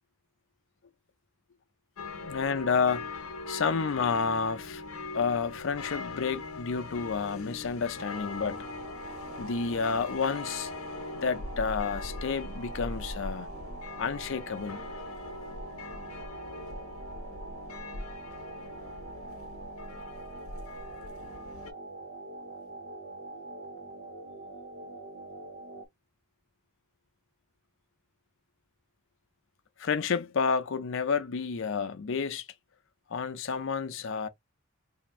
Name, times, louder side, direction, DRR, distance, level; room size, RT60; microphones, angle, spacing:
sound 1, 2.0-21.7, left 3 dB, 85° left, 0.8 m, -41 dB
voice 1, 2.3-3.1 3.5-4.8 5.1-8.6 9.4-10.7 11.2-13.5 14.0-14.8 29.8-32.5 33.1-34.3, left 5 dB, 60° left, 0.5 m, -30 dB
sound 2, 8.0-25.9, right 2 dB, 65° right, 0.9 m, -44 dB
2.7 x 2.5 x 4.2 m
head